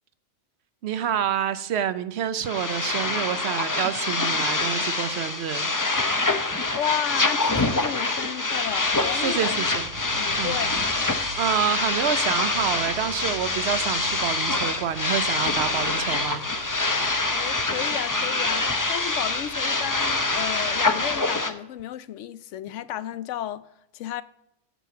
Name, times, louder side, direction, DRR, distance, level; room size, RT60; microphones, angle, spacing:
voice 1, 0.8-5.7 9.1-9.9 10.3-10.5 11.4-16.4, right 9 dB, 65° right, 0.9 m, -28 dB
sound 1, 2.4-21.5, left 2 dB, 20° left, 0.6 m, -25 dB
sound 2, 4.8-5.9 6.7-6.8 7.9-21.2, right 5 dB, 85° right, 1.3 m, -45 dB
voice 2, 6.7-9.7 10.0-10.8 17.3-23.6 23.9-24.2, left 11 dB, 80° left, 0.9 m, -33 dB
8.3 x 7.4 x 5.8 m
omnidirectional pair, 1.2 m